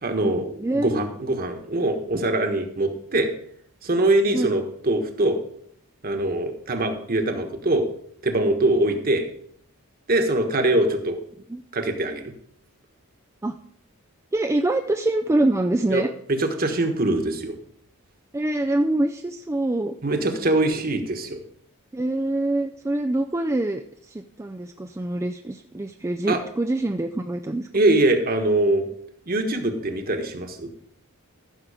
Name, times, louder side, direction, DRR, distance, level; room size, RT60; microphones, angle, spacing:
voice 1, 0.0-3.3 3.8-5.4 6.0-7.8 8.2-9.2 10.1-11.2 11.7-12.3 15.9-16.0 16.4-17.5 20.0-21.4 26.3-26.4 27.7-28.9 29.3-30.7, right 2 dB, 40° right, 5 dB, 1.4 m, -23 dB
voice 2, 0.6-1.1 4.3-4.6 11.5-11.6 13.4-13.5 14.3-16.1 18.3-20.0 21.9-27.7, right 1 dB, 15° right, 5 dB, 0.4 m, -25 dB
14.5 x 6.2 x 5.0 m, 0.67 s
head